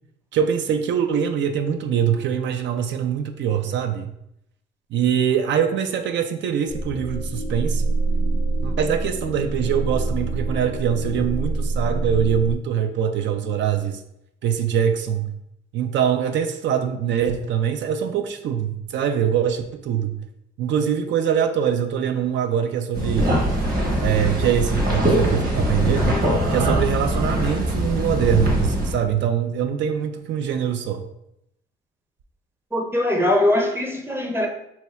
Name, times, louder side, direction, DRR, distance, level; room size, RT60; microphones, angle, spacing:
voice 1, 0.3-4.1 4.9-7.8 8.6-14.0 14.4-15.3 15.7-20.2 20.6-23.3 24.0-26.2 26.5-31.0, right 8 dB, 65° right, 0.4 m, -23 dB
sound 1, 6.7-12.5, right 2 dB, 60° left, 0.5 m, -25 dB
sound 2, 22.9-28.9, equal, 50° right, 1.3 m, -22 dB
voice 2, 32.7-34.5, left 1 dB, 10° right, 0.6 m, -21 dB
2.9 x 2.3 x 4.2 m
cardioid pair, 90°, 20 cm